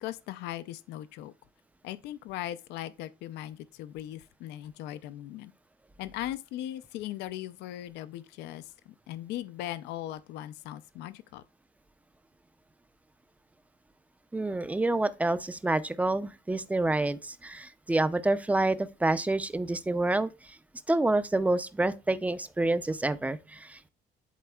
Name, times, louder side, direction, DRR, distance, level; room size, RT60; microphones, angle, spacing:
voice 1, 0.0-1.3 1.8-5.5 6.0-11.4, left 13 dB, 85° left, 0.5 m, -39 dB
voice 2, 14.3-20.6 20.9-23.9, right 2 dB, 10° right, 0.5 m, -28 dB
11.0 x 4.2 x 2.3 m
cardioid pair, 110°, 17 cm